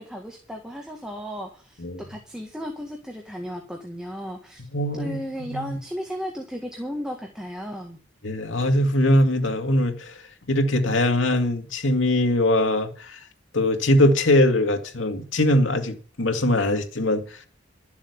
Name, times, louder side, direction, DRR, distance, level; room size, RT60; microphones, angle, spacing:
voice 1, 0.0-4.6 5.0-8.0, equal, 5° right, 1.8 m, -35 dB
voice 2, 4.7-5.8 8.2-10.2 10.5-13.2 13.5-17.2, left 1 dB, 85° left, 2.1 m, -21 dB
12.5 x 7.1 x 8.0 m
head